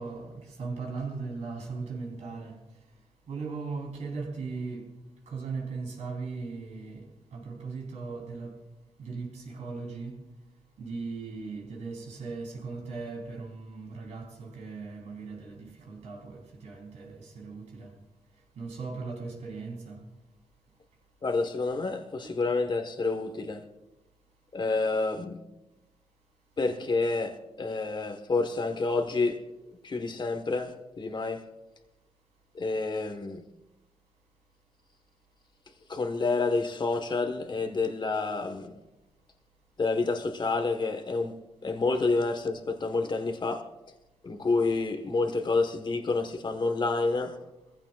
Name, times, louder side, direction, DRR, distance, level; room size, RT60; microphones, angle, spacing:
voice 1, 0.0-2.6 3.3-4.9 5.3-8.6 9.0-10.2 10.8-17.9 18.6-20.1 22.2-22.3 42.7-42.8, right 4 dB, 75° right, 3.6 m, -38 dB
voice 2, 21.2-23.6 24.5-25.4 26.6-29.4 29.8-31.4 32.5-33.4 35.9-38.7 39.8-41.3 41.6-43.6 44.2-47.4, left 3 dB, 40° left, 1.4 m, -28 dB
21.5 x 15.5 x 2.4 m
cardioid pair, 75°, 12 cm